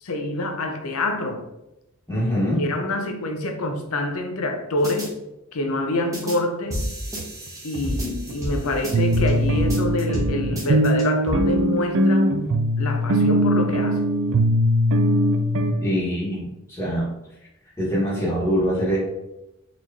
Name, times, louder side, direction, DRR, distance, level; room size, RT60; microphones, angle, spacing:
voice 1, 0.0-1.5 2.5-5.1 5.5-6.9 7.6-12.5 12.8-14.1, left 2 dB, 85° left, 0.6 m, -26 dB
voice 2, 2.1-2.6 15.8-17.1 17.8-19.0, equal, 15° left, 1.2 m, -23 dB
sound 1, 4.8-5.1 6.1-6.4 6.7-9.3 9.6-10.3 10.6-11.4, equal, 15° right, 1.0 m, -29 dB
sound 2, 7.2-7.3 7.7-7.8 8.3-8.4 8.9-15.7, equal, 65° right, 0.4 m, -21 dB
4.3 x 3.1 x 2.7 m
head